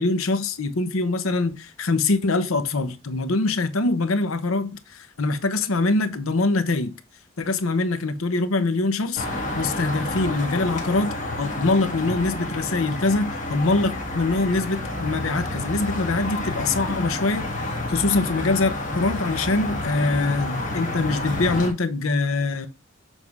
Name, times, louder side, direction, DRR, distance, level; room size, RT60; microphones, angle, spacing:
voice 1, 0.0-6.9 7.4-9.3 9.5-22.7, left 3 dB, 90° left, 0.8 m, -24 dB
sound 1, 9.2-21.7, left 2 dB, 35° left, 1.7 m, -29 dB
7.2 x 3.5 x 4.8 m
head